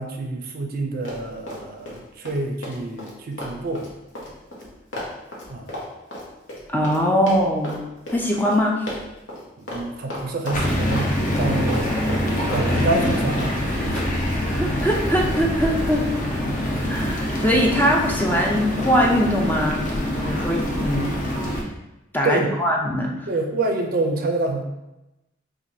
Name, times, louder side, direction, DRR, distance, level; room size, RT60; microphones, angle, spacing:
voice 1, 0.0-3.9 5.5-5.8 9.6-12.0 12.5-14.1 16.6-16.9 22.2-22.5 23.3-24.6, right 2 dB, 50° right, 3 dB, 0.4 m, -27 dB
Run, 1.0-2.0 2.2-7.0 7.3-7.8 8.1-8.2 8.4-8.6 8.9-9.4 9.7-9.8 10.1-11.1 11.3-12.7 12.9-13.5 13.9-14.1, left 1 dB, 85° left, 1.0 m, -33 dB
voice 2, 6.7-7.8 8.1-8.8 14.5-16.0 16.9-19.8 20.2-21.1 22.1-23.1, equal, 10° left, -1 dB, 0.4 m, -21 dB
sound 1, 10.5-21.6, left 1 dB, 45° left, 0.7 m, -25 dB
4.5 x 2.4 x 2.7 m, 0.94 s
head